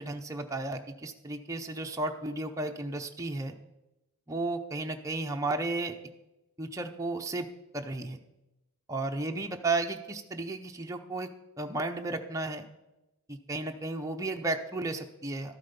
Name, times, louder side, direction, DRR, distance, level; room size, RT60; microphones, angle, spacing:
voice 1, 0.0-3.5 4.3-6.0 6.6-7.5 7.7-8.2 8.9-12.7 13.3-15.6, right 2 dB, 15° right, 3 dB, 0.6 m, -33 dB
13.0 x 8.2 x 5.2 m, 0.97 s
head